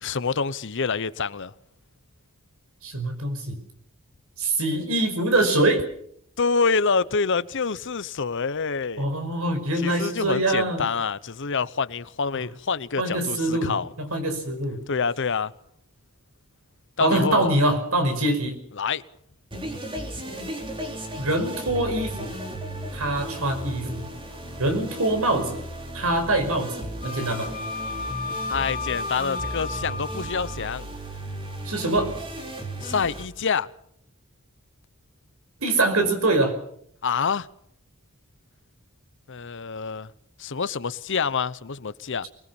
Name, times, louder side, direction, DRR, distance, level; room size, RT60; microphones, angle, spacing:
voice 1, 0.0-1.5 6.4-9.1 9.8-13.9 14.9-15.5 17.0-17.5 18.8-19.0 28.5-30.9 32.8-33.7 37.0-37.5 39.3-40.1 40.4-42.3, left 5 dB, 60° left, 0.8 m, -27 dB
voice 2, 2.8-3.6 4.4-5.8 9.0-10.9 12.3-12.5 13.0-14.8 17.0-18.6 21.2-22.3 22.9-24.1 24.6-25.6 25.9-27.5 31.7-32.2 35.6-36.5, right 2 dB, 75° right, 5.4 m, -24 dB
sound 1, 19.5-33.2, right 1 dB, 25° right, 4.0 m, -35 dB
Wind instrument woodwind instrument, 27.0-30.7, left 4 dB, 40° left, 4.4 m, -33 dB
24.5 x 20.5 x 7.1 m
head